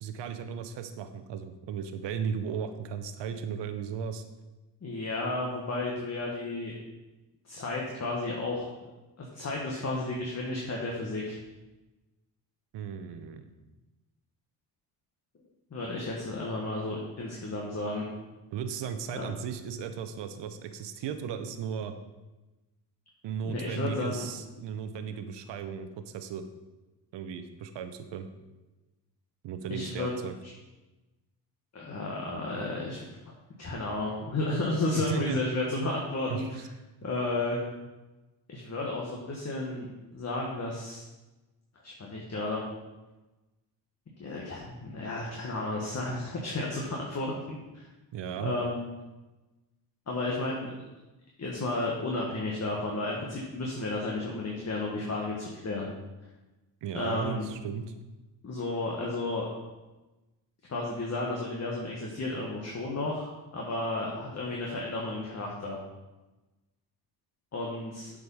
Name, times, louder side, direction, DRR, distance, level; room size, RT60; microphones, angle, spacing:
voice 1, 0.0-4.2 12.7-13.5 18.5-21.9 23.2-26.4 27.1-28.3 29.4-30.3 34.9-35.4 36.3-36.4 48.1-48.5 56.8-57.9, right 7 dB, 75° right, 8 dB, 0.8 m, -36 dB
voice 2, 4.8-6.7 7.4-8.7 9.2-11.4 15.7-18.0 19.1-19.3 23.4-24.3 29.7-30.1 30.4-30.5 31.7-33.0 33.6-36.6 37.0-37.6 38.5-41.0 41.8-42.6 44.2-47.8 48.4-48.9 50.1-50.7 51.4-55.9 56.9-57.5 58.4-59.5 60.7-65.8 67.5-68.1, left 2 dB, 35° left, -2 dB, 1.5 m, -32 dB
7.9 x 5.1 x 5.4 m, 1.1 s
cardioid pair, 90°, 43 cm